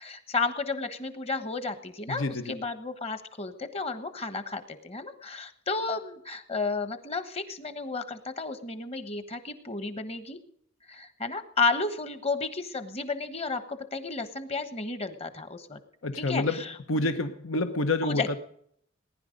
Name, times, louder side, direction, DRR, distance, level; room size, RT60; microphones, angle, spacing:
voice 1, 0.0-10.4 10.9-15.8 16.2-16.7 18.0-18.4, left 4 dB, 30° left, 1.2 m, -32 dB
voice 2, 2.1-2.6 16.0-18.4, left 2 dB, 85° left, 1.0 m, -28 dB
19.5 x 10.5 x 5.2 m
head